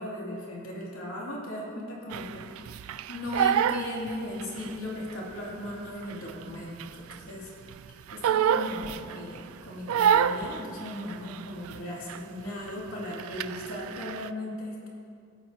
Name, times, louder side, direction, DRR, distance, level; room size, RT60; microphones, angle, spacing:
voice 1, 0.0-7.5 8.1-14.9, left 1 dB, 70° left, -4 dB, 2.6 m, -37 dB
Crying sobbing, 2.1-4.8 5.1-7.4 7.7-9.4 9.9-11.8 12.1-12.4 12.7-14.3, right 8 dB, 70° right, 0.3 m, -28 dB
16.0 x 8.8 x 2.8 m, 2.4 s
head